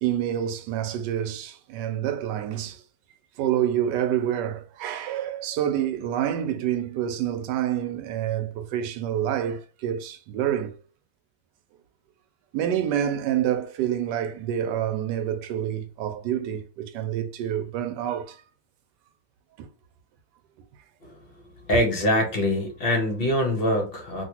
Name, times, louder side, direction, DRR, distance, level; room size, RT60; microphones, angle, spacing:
voice 1, 0.0-2.8 3.4-10.8 12.5-18.4 19.6-19.7, right 10 dB, 85° right, 1.2 m, -27 dB
voice 2, 21.6-24.2, left 1 dB, 45° left, 0.9 m, -24 dB
3.1 x 2.5 x 2.8 m
omnidirectional pair, 1.8 m